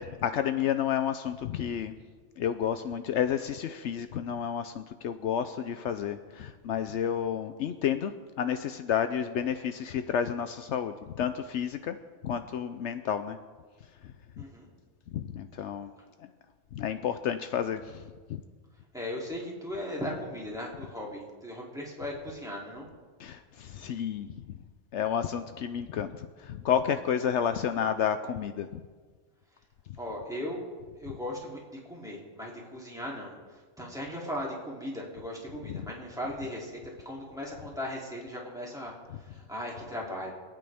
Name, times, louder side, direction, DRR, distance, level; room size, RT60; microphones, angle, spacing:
voice 1, 0.0-2.0 2.4-8.1 8.4-12.0 12.2-13.4 14.4-14.5 15.1-15.9 16.7-18.0 23.2-24.3 24.9-28.8 31.1-31.2 35.7-35.9 39.1-39.2, left 8 dB, 75° left, 9 dB, 0.9 m, -31 dB
voice 2, 14.4-14.7 18.9-22.9 30.0-30.6 31.0-33.3 33.8-38.9 39.2-40.3, left 1 dB, 5° right, -4 dB, 2.9 m, -37 dB
26.0 x 9.4 x 3.5 m, 1.5 s
omnidirectional pair, 1.2 m